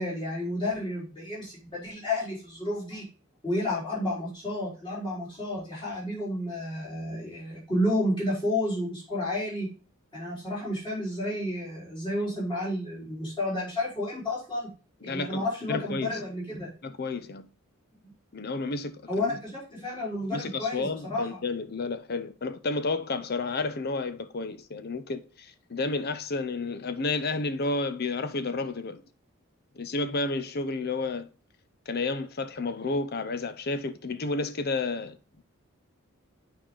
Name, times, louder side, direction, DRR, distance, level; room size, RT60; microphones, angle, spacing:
voice 1, 0.0-3.0 3.4-9.7 10.1-14.7 15.0-16.7 18.0-18.1 19.1-21.4, left 1 dB, 25° left, 4.4 m, -31 dB
voice 2, 15.0-16.2 16.8-17.5 18.3-19.4 20.3-29.0 29.7-31.3 31.9-35.4, left 3 dB, 50° left, 0.6 m, -31 dB
8.9 x 4.8 x 3.9 m
head